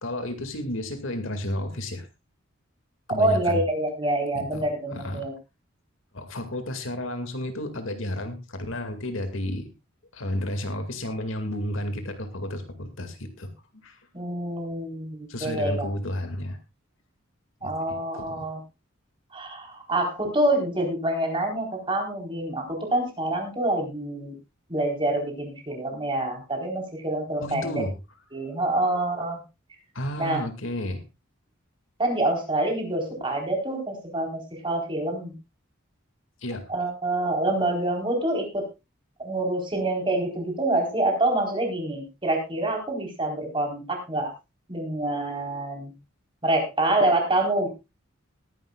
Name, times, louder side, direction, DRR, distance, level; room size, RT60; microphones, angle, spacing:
voice 1, 0.0-2.1 3.1-3.6 4.3-4.6 4.9-5.3 6.1-9.7 10.1-14.0 15.3-16.6 17.6-18.5 27.4-27.9 29.9-31.0 36.4-36.7, left 1 dB, 75° left, 7 dB, 2.2 m, -32 dB
voice 2, 3.2-5.3 14.1-15.9 17.6-18.6 19.3-24.3 24.7-27.8 28.3-29.4 30.2-30.4 32.0-35.3 36.7-38.7 39.2-44.3 44.7-45.9 46.4-47.7, right 1 dB, 25° right, 2 dB, 4.1 m, -26 dB
19.5 x 11.0 x 2.4 m, 0.25 s
head